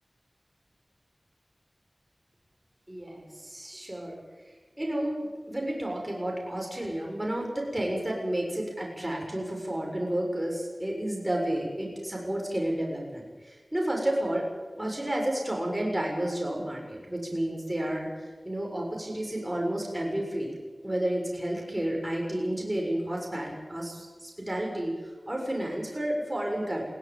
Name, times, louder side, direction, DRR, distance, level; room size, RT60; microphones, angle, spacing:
voice 1, 2.9-4.2 4.8-14.5 14.8-20.5 20.8-26.9, right 1 dB, 15° right, -1 dB, 7.1 m, -31 dB
21.5 x 17.5 x 9.2 m, 1.3 s
wide cardioid pair, 55°, 0 cm